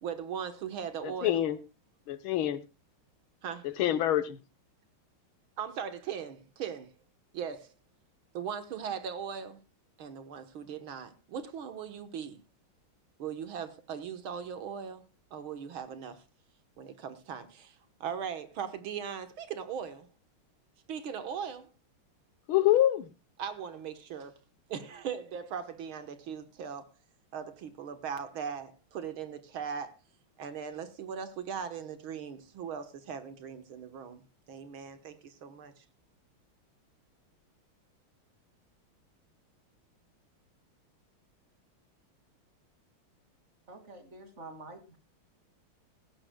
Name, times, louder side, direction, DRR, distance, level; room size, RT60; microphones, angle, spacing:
voice 1, 0.0-1.4 3.4-3.7 5.6-6.9 7.3-7.7 8.3-9.6 10.0-12.4 13.2-15.0 15.3-16.2 16.8-20.1 20.9-21.7 23.4-24.4 24.7-26.9 27.3-30.0 30.4-34.2 34.5-35.8, right 7 dB, 75° right, 2.1 m, -39 dB
voice 2, 1.0-1.6 2.1-2.6 3.6-4.4 22.5-23.1, left 13 dB, 75° left, 1.7 m, -26 dB
voice 3, 43.7-45.0, right 2 dB, 35° right, 2.6 m, -47 dB
17.5 x 15.5 x 2.3 m
omnidirectional pair, 2.3 m